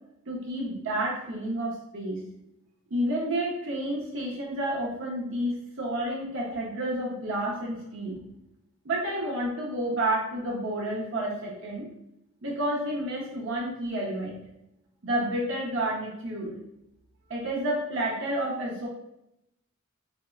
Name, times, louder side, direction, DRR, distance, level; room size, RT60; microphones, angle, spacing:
voice 1, 0.3-2.2 2.9-8.2 8.8-11.9 12.4-14.4 15.0-16.6 17.3-18.9, right 1 dB, 60° right, -3 dB, 0.6 m, -30 dB
4.2 x 2.0 x 2.3 m, 0.84 s
head